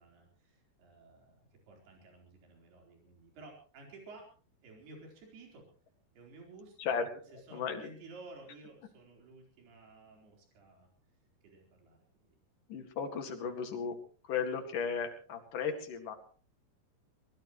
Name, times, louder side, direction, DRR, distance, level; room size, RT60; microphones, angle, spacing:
voice 1, 0.0-4.3 4.6-5.7 6.2-6.9 7.3-10.9 11.4-12.4, right 2 dB, 75° right, 1 dB, 6.3 m, -54 dB
voice 2, 7.5-7.9 12.7-14.0 14.2-16.2, left 6 dB, 55° left, 6 dB, 3.4 m, -35 dB
22.5 x 19.0 x 3.2 m, 0.40 s
omnidirectional pair, 4.6 m